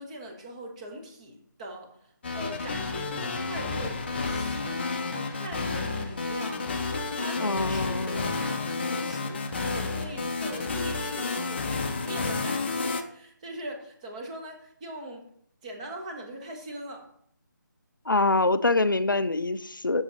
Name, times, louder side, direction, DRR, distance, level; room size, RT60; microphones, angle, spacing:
voice 1, 0.0-1.9 2.3-9.5 9.7-15.2 15.6-17.1, right 1 dB, 20° right, 2 dB, 1.1 m, -41 dB
sound 1, 2.2-13.0, left 4 dB, 30° left, 0.6 m, -31 dB
voice 2, 7.4-8.2 18.1-20.0, left 2 dB, 85° left, 13 dB, 0.5 m, -25 dB
7.2 x 6.3 x 4.0 m, 0.66 s
figure-of-eight pair, 150°, 11 cm